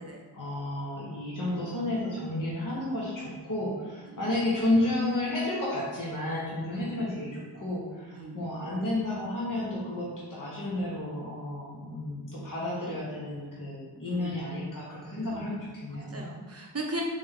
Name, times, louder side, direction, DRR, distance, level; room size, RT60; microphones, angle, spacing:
voice 1, 0.3-16.2, left 1 dB, 50° left, -6 dB, 1.0 m, -31 dB
voice 2, 8.2-8.5 14.1-14.4 15.2-15.5 15.9-17.0, right 2 dB, 35° right, 0 dB, 0.7 m, -38 dB
3.8 x 3.4 x 3.5 m, 1.4 s
wide cardioid pair, 65°, 40 cm